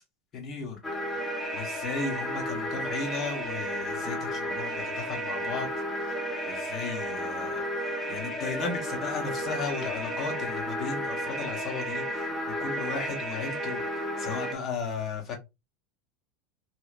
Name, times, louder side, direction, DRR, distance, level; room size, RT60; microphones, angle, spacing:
voice 1, 0.3-0.8 1.1-5.7 5.9-6.2 6.4-7.6 8.1-12.3 12.6-15.3, left 5 dB, 40° left, 1 dB, 1.1 m, -35 dB
sound 1, 0.8-14.6, equal, 20° left, 0.8 m, -33 dB
2.9 x 2.0 x 2.5 m, 0.23 s
hypercardioid pair, 85°, 0 cm